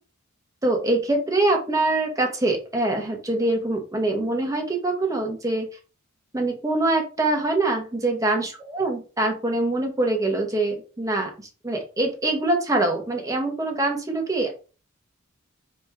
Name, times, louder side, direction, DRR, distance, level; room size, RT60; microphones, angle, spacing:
voice 1, 0.6-5.7 6.3-14.5, right 2 dB, 15° right, 2 dB, 1.0 m, -24 dB
4.4 x 3.0 x 3.5 m, 0.35 s
head